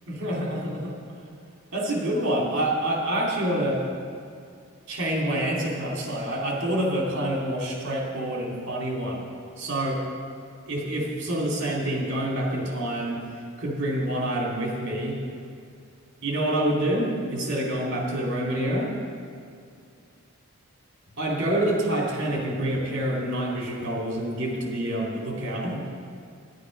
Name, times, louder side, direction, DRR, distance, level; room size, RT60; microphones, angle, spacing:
voice 1, 0.1-0.9 1.7-3.8 4.9-9.2 9.6-10.0 10.7-13.2 13.6-15.2 16.2-18.9 21.2-25.8, right 1 dB, 55° right, -2 dB, 2.6 m, -27 dB
11.0 x 10.5 x 5.2 m, 2.4 s
head